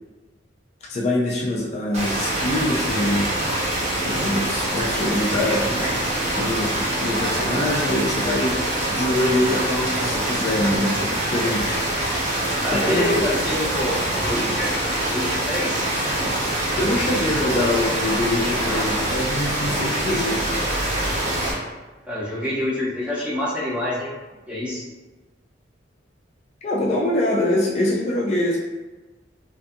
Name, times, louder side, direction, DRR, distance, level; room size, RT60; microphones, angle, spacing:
voice 1, 0.9-3.5 4.0-6.0 6.4-8.6 8.9-11.8 12.7-13.3 16.8-20.4 26.6-28.6, left 1 dB, 35° left, -3 dB, 0.3 m, -24 dB
sound 1, 1.9-21.5, right 1 dB, 40° right, 0.8 m, -24 dB
voice 2, 12.6-14.8 15.1-15.9 18.6-18.9 22.1-24.1 24.5-24.8, left 1 dB, 5° right, -7 dB, 0.6 m, -27 dB
2.5 x 2.5 x 2.4 m, 1.2 s
head